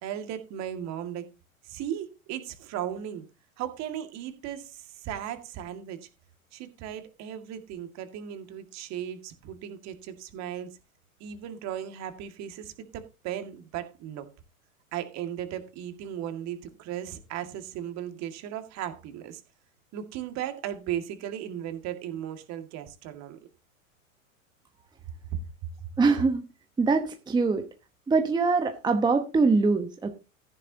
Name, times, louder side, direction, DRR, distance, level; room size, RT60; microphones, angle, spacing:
voice 1, 0.0-1.3 1.6-3.3 3.6-6.1 6.5-10.7 11.2-14.3 14.9-19.4 19.9-23.4 25.3-25.4, right 10 dB, 40° right, 2.1 m, -36 dB
voice 2, 26.0-26.4 26.8-27.6 28.1-30.2, right 4 dB, 10° right, 1.1 m, -23 dB
14.5 x 10.0 x 2.8 m
figure-of-eight pair, 95°, 42 cm